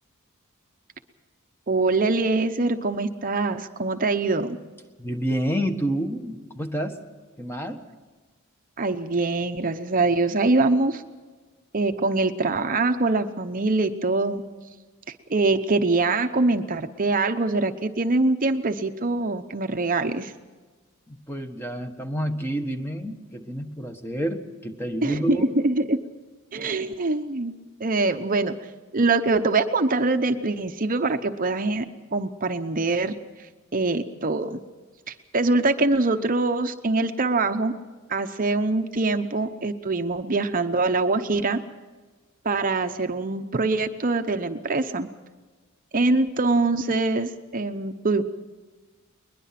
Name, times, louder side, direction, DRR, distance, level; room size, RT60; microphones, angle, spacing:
voice 1, 1.7-4.6 8.8-11.0 11.7-14.4 15.3-20.3 25.0-26.0 26.5-27.5 27.8-28.5 28.9-31.8 32.1-33.1 33.7-34.6 35.1-37.7 38.1-41.6 42.4-45.1 45.9-48.2, right 3 dB, 40° right, 8 dB, 0.8 m, -23 dB
voice 2, 5.0-7.0 7.4-7.8 21.1-25.4, right 1 dB, 10° left, 5 dB, 1.4 m, -29 dB
21.5 x 21.5 x 5.9 m, 1.3 s
head